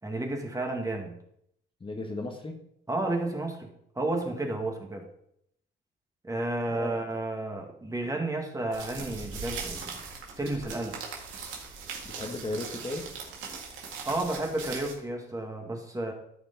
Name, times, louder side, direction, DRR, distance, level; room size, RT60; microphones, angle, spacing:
voice 1, 0.0-1.2 2.9-3.7 4.0-5.1 6.2-9.9 10.4-11.0 14.1-16.1, right 2 dB, 15° right, 2 dB, 1.9 m, -32 dB
voice 2, 1.8-2.5 6.7-6.9 9.7-9.9 12.1-13.0, left 2 dB, 25° left, 3 dB, 1.4 m, -35 dB
sound 1, 8.7-14.9, right 5 dB, 90° right, 2.0 m, -40 dB
13.0 x 5.1 x 4.0 m, 0.73 s
cardioid pair, 90°, 20 cm